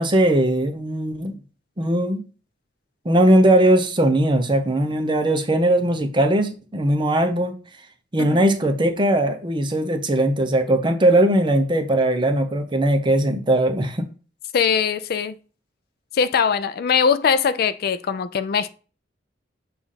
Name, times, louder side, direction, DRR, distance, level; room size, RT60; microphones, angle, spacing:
voice 1, 0.0-1.4 1.8-2.2 3.0-7.5 8.1-14.0, right 1 dB, 25° right, 0.6 m, -19 dB
voice 2, 14.5-15.4 16.1-18.7, left 6 dB, 55° left, 0.4 m, -21 dB
6.9 x 2.5 x 5.5 m
head